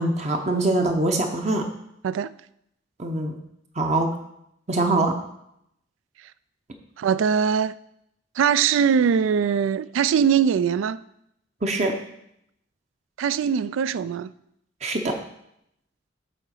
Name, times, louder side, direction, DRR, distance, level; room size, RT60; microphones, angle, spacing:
voice 1, 0.0-1.6 3.0-3.3 3.8-4.1 4.7-5.1 11.6-11.9 14.8-15.1, right 2 dB, 35° right, 0.7 m, -23 dB
voice 2, 7.0-7.7 8.4-11.0 13.2-14.3, right 7 dB, 75° right, 0.3 m, -21 dB
7.6 x 3.8 x 6.4 m
head